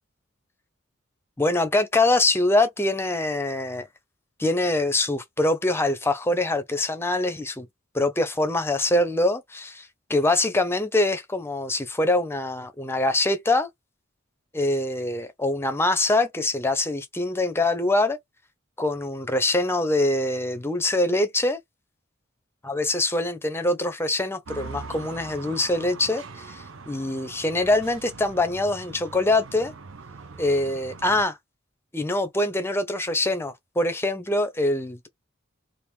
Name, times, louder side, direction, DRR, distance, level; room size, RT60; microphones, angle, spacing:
voice 1, 1.4-3.9 4.4-7.7 7.9-13.7 14.5-18.2 18.8-21.6 22.6-29.7 30.4-31.4 31.9-35.1, left 2 dB, 10° left, 0.6 m, -24 dB
sound 1, 24.5-31.2, right 4 dB, 80° right, 0.7 m, -42 dB
2.9 x 2.6 x 3.4 m
head